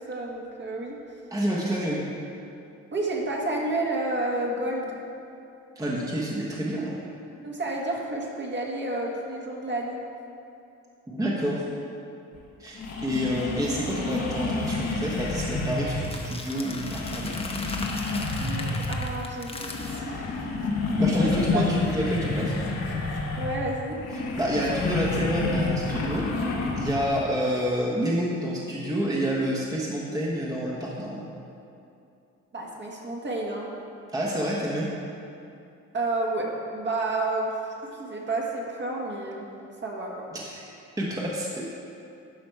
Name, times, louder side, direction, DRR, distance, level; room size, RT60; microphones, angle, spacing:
voice 1, 0.1-1.0 2.9-5.0 7.4-10.0 18.4-20.1 21.0-21.6 23.4-24.0 32.5-33.7 35.9-39.5 39.8-40.3, right 2 dB, 35° right, -2 dB, 1.7 m, -30 dB
voice 2, 1.3-2.0 5.8-7.0 11.1-11.7 12.6-17.4 21.0-22.6 24.1-26.3 26.7-31.3 34.1-34.9 40.3-40.7 41.0-41.7, equal, 10° right, -4 dB, 1.2 m, -28 dB
sound 1, 12.3-12.4 12.8-16.2 16.7-19.2 19.5-27.1, left 3 dB, 60° left, 1.4 m, -29 dB
sound 2, 15.0-20.0, left 2 dB, 20° left, 0.9 m, -39 dB
11.5 x 5.1 x 4.7 m, 2.6 s
cardioid pair, 90°, 30 cm